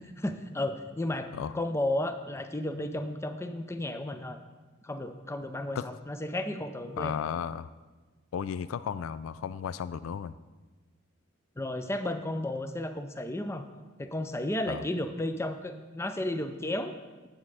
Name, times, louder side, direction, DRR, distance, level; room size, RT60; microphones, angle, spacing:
voice 1, 0.0-4.4 4.8-7.1 11.6-13.6 14.0-17.0, left 1 dB, 15° left, 8 dB, 0.5 m, -33 dB
voice 2, 7.0-7.7 8.3-10.3 14.7-14.8, left 7 dB, 85° left, 15 dB, 0.3 m, -34 dB
9.7 x 7.4 x 4.8 m, 1.3 s
head